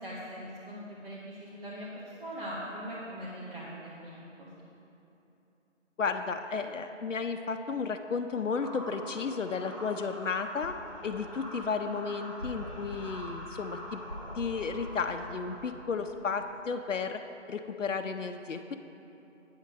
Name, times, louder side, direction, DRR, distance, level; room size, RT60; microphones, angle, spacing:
voice 1, 0.0-4.5, equal, 50° right, -7 dB, 1.4 m, -41 dB
voice 2, 6.0-10.8 11.0-14.0 14.3-17.2 17.5-18.8, left 5 dB, 75° left, 6 dB, 0.6 m, -33 dB
sound 1, 8.5-16.6, equal, 25° left, 0.7 m, -43 dB
8.8 x 6.6 x 5.2 m, 2.9 s
figure-of-eight pair, 175°, 37 cm